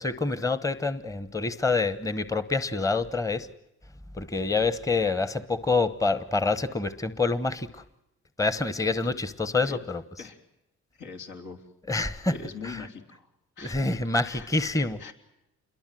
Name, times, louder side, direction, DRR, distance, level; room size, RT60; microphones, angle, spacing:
voice 1, 0.0-3.5 4.1-7.8 8.4-10.0 11.9-12.3 12.6-12.8 13.6-15.1, left 3 dB, 10° left, 14 dB, 1.0 m, -27 dB
voice 2, 11.0-11.6 12.2-13.3 13.6-14.5 15.0-15.1, left 4 dB, 75° left, 3 dB, 3.8 m, -42 dB
28.0 x 22.0 x 7.7 m, 0.86 s
cardioid pair, 90°, 30 cm